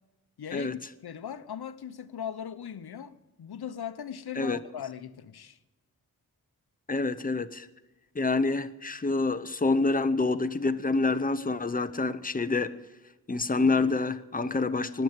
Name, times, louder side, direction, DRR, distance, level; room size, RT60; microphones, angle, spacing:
voice 1, 0.4-5.6, left 8 dB, 85° left, 0.9 m, -39 dB
voice 2, 6.9-7.7 8.1-12.8 13.3-15.0, left 3 dB, 25° left, 0.8 m, -27 dB
20.0 x 8.1 x 8.8 m
wide cardioid pair, 130°, 37 cm